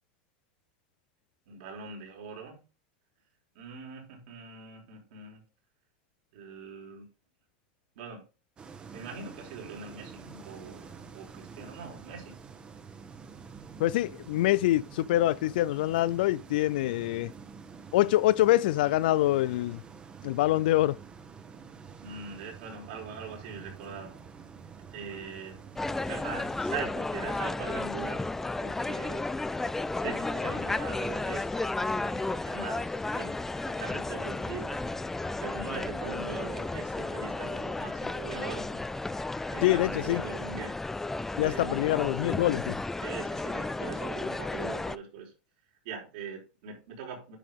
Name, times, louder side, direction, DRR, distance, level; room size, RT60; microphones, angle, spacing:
voice 1, 1.5-2.6 3.5-5.4 6.3-7.1 7.9-8.2 8.9-12.3 22.0-24.1 24.9-25.6 26.1-28.2 28.6-29.2 30.0-33.3 33.8-34.8 35.4-38.8 39.5-40.8 41.4-41.9 43.0-45.3 45.8-47.4, right 6 dB, 75° right, 4.6 m, -42 dB
sound 1, 8.6-26.7, right 5 dB, 20° right, 1.1 m, -47 dB
voice 2, 13.8-17.3 17.9-19.8 20.2-21.0 39.6-40.2 41.4-42.8, left 15 dB, 75° left, 0.4 m, -25 dB
sound 2, 25.8-45.0, left 2 dB, 5° left, 0.3 m, -33 dB
9.9 x 5.1 x 3.5 m
supercardioid pair, 135°, 5 cm